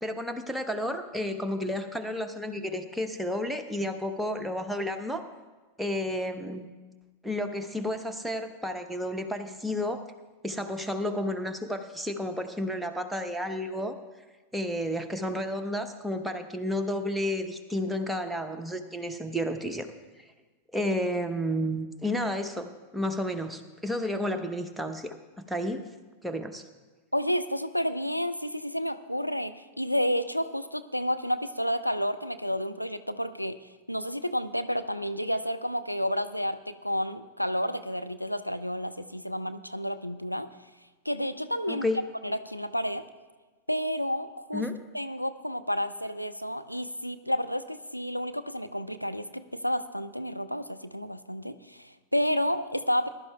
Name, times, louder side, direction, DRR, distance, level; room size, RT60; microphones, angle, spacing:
voice 1, 0.0-5.3 5.8-6.7 7.2-10.0 10.4-14.0 14.5-19.9 20.2-20.3 20.7-25.9 26.2-26.6 41.7-42.0 44.5-44.7, left 1 dB, 5° right, 5 dB, 0.9 m, -31 dB
voice 2, 27.1-33.6 33.9-40.5 41.1-41.9 42.2-43.0 43.7-44.6 44.9-53.1, equal, 90° left, 9 dB, 0.4 m, -30 dB
20.0 x 12.0 x 2.3 m, 1.3 s
figure-of-eight pair, 90°, 0 cm